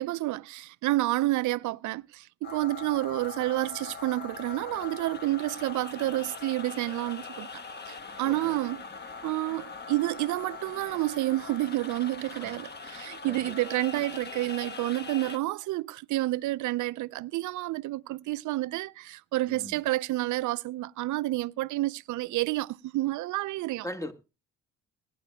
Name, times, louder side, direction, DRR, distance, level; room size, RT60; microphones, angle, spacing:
voice 1, 0.0-7.5 7.9-8.9 9.2-23.9, right 17 dB, 75° right, 0.5 m, -29 dB
sound 1, 2.4-15.4, left 5 dB, 35° left, 1.2 m, -42 dB
voice 2, 8.2-8.6 12.3-12.6 13.2-13.5 19.5-19.7 23.8-24.1, left 1 dB, 10° left, 1.7 m, -40 dB
21.5 x 10.0 x 2.2 m
cardioid pair, 90°, 30 cm